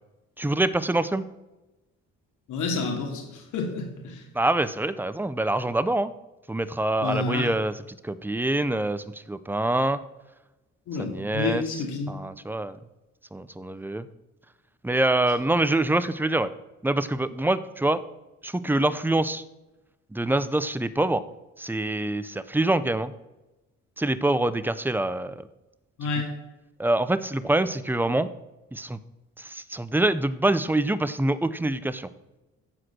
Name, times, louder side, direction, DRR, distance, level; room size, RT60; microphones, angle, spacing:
voice 1, 0.4-1.2 4.3-6.1 6.5-10.0 11.0-11.6 12.1-12.8 13.3-14.1 14.8-16.5 16.8-18.0 18.4-19.4 20.1-21.2 21.6-23.1 24.0-25.4 26.1-26.2 26.8-28.3 28.7-29.0 29.4-32.1, right 2 dB, 5° right, 14 dB, 0.6 m, -25 dB
voice 2, 2.5-4.2 7.0-7.5 10.9-12.1 26.0-26.3, left 4 dB, 80° left, 1 dB, 2.8 m, -29 dB
14.5 x 5.0 x 6.1 m, 1.0 s
cardioid pair, 90°, 30 cm